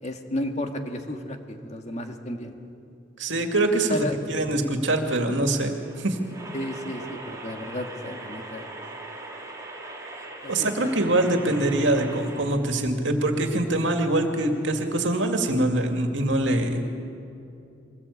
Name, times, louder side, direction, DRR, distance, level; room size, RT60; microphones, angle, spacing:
voice 1, 0.0-2.6 3.9-4.2 6.5-8.7 10.4-11.0, left 1 dB, 35° left, 4 dB, 1.8 m, -33 dB
voice 2, 3.2-6.2 10.5-16.8, right 1 dB, 75° right, 4 dB, 2.3 m, -24 dB
sound 1, 5.2-12.6, right 2 dB, 20° right, 3.6 m, -40 dB
23.0 x 19.0 x 8.5 m, 2.6 s
head